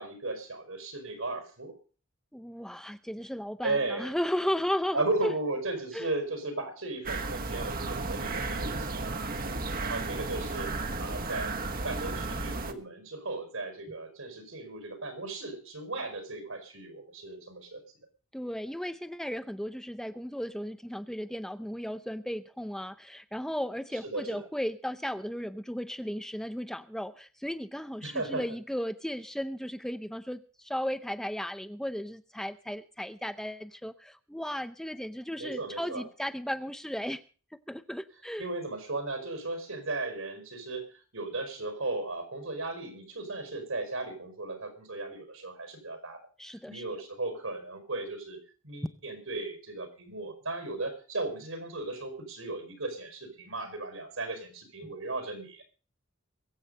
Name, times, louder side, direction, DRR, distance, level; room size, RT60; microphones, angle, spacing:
voice 1, 0.0-1.7 3.6-4.1 4.9-9.2 9.8-11.6 11.8-17.8 24.0-24.4 28.0-28.4 35.4-36.0 38.4-40.9 41.1-46.2 46.5-48.4 48.6-55.6, right 2 dB, 75° right, 8 dB, 4.7 m, -36 dB
voice 2, 2.3-5.3 5.9-6.1 18.3-37.2 37.5-38.5 46.4-46.8 54.8-54.9, equal, 5° left, 11 dB, 0.6 m, -35 dB
sound 1, 7.1-12.7, right 3 dB, 45° right, 1.3 m, -34 dB
22.5 x 8.0 x 5.4 m, 0.37 s
head